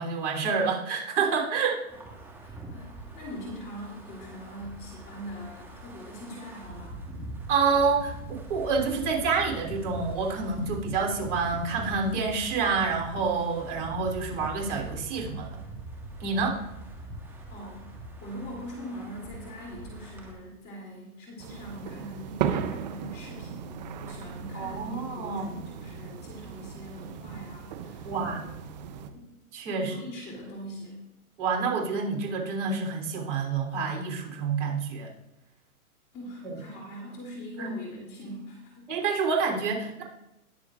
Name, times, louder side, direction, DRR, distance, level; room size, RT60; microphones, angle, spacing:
voice 1, 0.0-1.8 7.5-15.6 16.2-16.6 24.5-25.6 28.0-28.4 29.5-29.9 31.4-35.1 36.4-36.6 37.6-37.8 38.9-40.0, right 5 dB, 50° right, 0 dB, 3.4 m, -28 dB
Wind, 1.9-20.3, right 2 dB, 5° right, 1.7 m, -42 dB
voice 2, 2.4-7.0 17.5-17.9 18.2-28.5 29.0-29.3 29.6-31.0 36.1-38.9, equal, 20° left, -2 dB, 3.1 m, -42 dB
sound 1, 21.4-29.1, right 7 dB, 30° right, 0.7 m, -36 dB
19.5 x 7.1 x 2.5 m, 0.92 s
hypercardioid pair, 140°, 44 cm